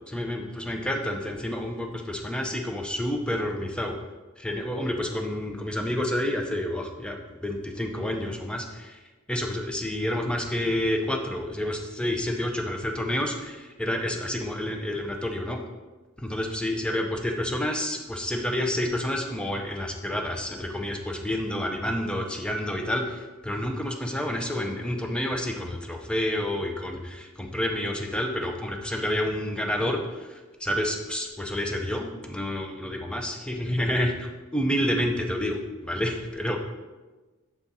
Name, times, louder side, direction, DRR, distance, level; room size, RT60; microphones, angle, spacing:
voice 1, 0.1-3.9 4.4-9.0 9.3-15.6 16.2-36.6, left 1 dB, 5° left, 3 dB, 0.5 m, -29 dB
7.3 x 3.6 x 4.0 m, 1.2 s
head